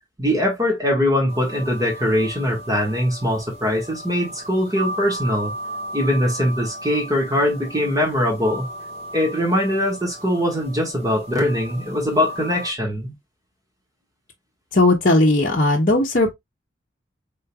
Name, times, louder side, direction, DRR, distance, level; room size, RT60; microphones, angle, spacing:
voice 1, 0.2-5.5 5.9-8.7 9.1-13.1, left 1 dB, 20° right, 1.6 m, -22 dB
sound 1, 1.3-12.7, right 1 dB, 35° right, 1.6 m, -35 dB
voice 2, 14.7-16.3, left 2 dB, 45° left, 0.9 m, -17 dB
5.1 x 3.8 x 2.3 m
head